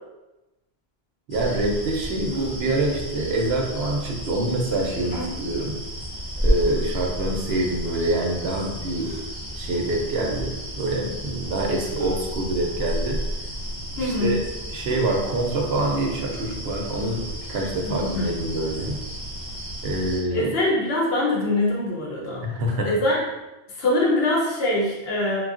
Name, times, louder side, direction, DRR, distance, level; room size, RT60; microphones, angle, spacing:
sound 1, 1.3-20.2, equal, 25° left, 0.8 m, -32 dB
voice 1, 1.3-5.8 6.4-9.1 9.5-13.2 14.0-14.4 14.7-19.0 19.8-20.5 22.4-22.9, right 2 dB, 75° right, 1 dB, 0.8 m, -26 dB
sound 2, 2.3-2.6 4.7-4.9 5.7-5.8 6.7-7.0 9.0-9.3 10.4-10.5 11.9-12.2 13.1-13.3 13.6-13.7 14.8-15.2 16.9-17.2, equal, 45° left, 0.3 m, -39 dB
voice 2, 14.0-14.4 17.8-18.3 20.3-22.4 22.8-23.2 23.8-25.4, left 1 dB, 75° left, -3 dB, 1.0 m, -23 dB
3.2 x 2.3 x 2.4 m, 1.0 s
omnidirectional pair, 1.1 m